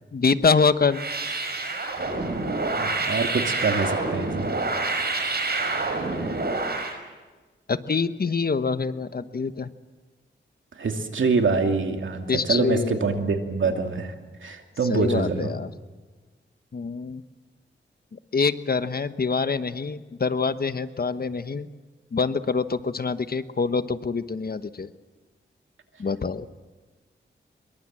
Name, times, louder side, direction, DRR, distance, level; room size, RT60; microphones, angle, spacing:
voice 1, 0.1-1.0 7.7-9.7 12.3-13.1 14.9-15.7 16.7-17.2 18.1-21.7 22.1-24.9 26.0-26.5, left 4 dB, 50° left, 12 dB, 1.1 m, -25 dB
sound 1, 0.9-7.0, right 3 dB, 55° right, 5.4 m, -27 dB
voice 2, 2.5-4.5 6.2-6.4 10.7-14.2 14.4-15.5, right 4 dB, 85° right, 4 dB, 2.6 m, -25 dB
25.5 x 22.5 x 7.5 m, 1.3 s
wide cardioid pair, 85°, 20 cm